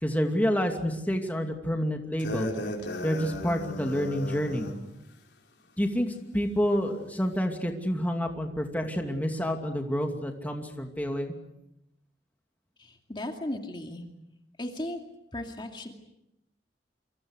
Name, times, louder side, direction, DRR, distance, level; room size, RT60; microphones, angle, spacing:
voice 1, 0.0-2.5 3.0-4.7 5.8-11.3, equal, 10° left, 3 dB, 2.6 m, -28 dB
sound 1, 2.2-4.8, left 1 dB, 65° left, 4.9 m, -35 dB
voice 2, 12.8-14.0 14.6-15.0 15.3-15.9, left 1 dB, 25° left, 3 dB, 2.4 m, -36 dB
29.0 x 25.0 x 6.5 m, 0.83 s
head